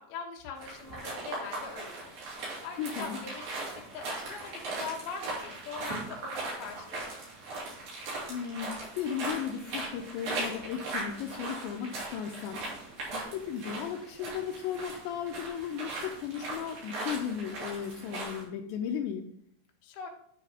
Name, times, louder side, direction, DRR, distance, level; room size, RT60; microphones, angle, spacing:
voice 1, 0.0-2.1 2.6-7.2 19.8-20.1, left 6 dB, 70° left, 1 dB, 2.8 m, -42 dB
sound 1, 0.6-18.4, right 2 dB, 60° right, 4.4 m, -39 dB
voice 2, 2.8-3.2 8.3-12.6 13.0-19.3, left 8 dB, 85° left, 4 dB, 2.9 m, -36 dB
9.8 x 4.5 x 4.9 m, 0.71 s
omnidirectional pair, 5.1 m